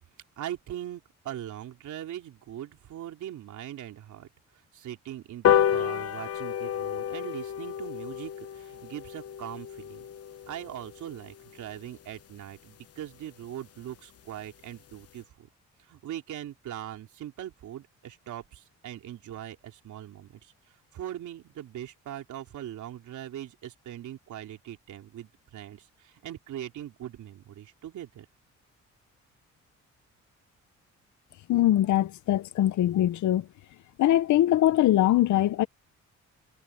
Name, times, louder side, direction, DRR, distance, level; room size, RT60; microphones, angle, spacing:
voice 1, 0.4-4.3 4.7-10.1 10.5-15.5 15.9-20.5 20.9-28.3, right 11 dB, 75° right, 3.5 m, -41 dB
sound 1, 5.4-12.2 12.6-12.7 13.0-13.1 13.4-13.5 13.8-13.9 14.2-14.5 14.9-15.0, left 9 dB, 50° left, 1.0 m, -30 dB
voice 2, 31.5-33.5 34.0-35.7, left 13 dB, 75° left, 1.0 m, -22 dB
cardioid pair, 90°, 30 cm